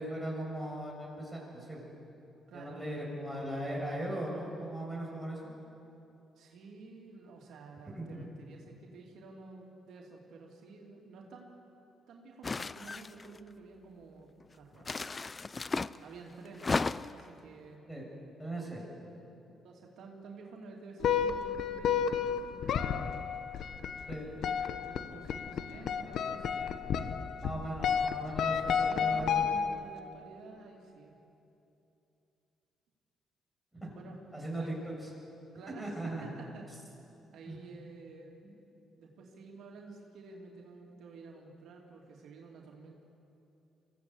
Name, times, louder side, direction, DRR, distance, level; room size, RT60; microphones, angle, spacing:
voice 1, 0.0-1.8 2.5-5.4 7.9-8.2 17.9-18.0 18.4-18.8 24.1-24.3 27.4-29.4 33.8-33.9 34.3-34.9 35.8-36.2 37.5-37.6 38.4-38.5, right 1 dB, ahead, -2 dB, 7.1 m, -38 dB
voice 2, 2.5-3.2 6.4-11.6 12.1-14.3 14.5-15.1 16.0-16.8 17.1-17.8 19.6-23.1 24.3-26.6 27.6-27.8 28.6-31.1 33.9-34.2 34.6-34.7 35.5-36.7 37.3-38.4 39.0-43.0, right 4 dB, 75° right, -1 dB, 2.8 m, -51 dB
sound 1, 12.4-13.4 14.8-16.0 16.5-17.3, left 4 dB, 30° left, 0.5 m, -34 dB
sound 2, 21.0-30.0, left 7 dB, 70° left, 1.0 m, -32 dB
24.5 x 15.5 x 8.2 m, 2.8 s
cardioid pair, 90°, 0 cm